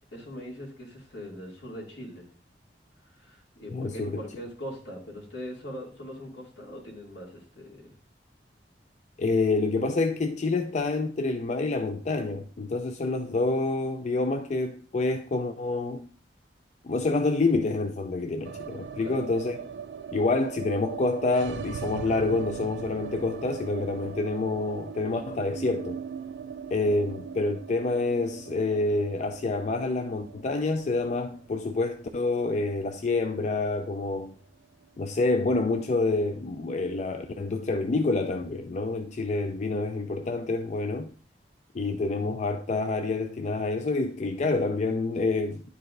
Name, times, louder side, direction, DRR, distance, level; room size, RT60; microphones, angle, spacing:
voice 1, 0.1-2.3 3.2-7.9 19.0-19.3, equal, 75° left, 2.4 m, -41 dB
voice 2, 3.7-4.2 9.2-16.1 16.8-19.6 20.1-26.0 26.7-34.3 35.0-41.1 41.7-45.6, left 3 dB, 40° left, 0.4 m, -27 dB
sound 1, 18.4-34.6 34.8-34.9 35.2-35.9, right 6 dB, 85° right, 0.4 m, -40 dB
10.5 x 4.7 x 2.5 m
head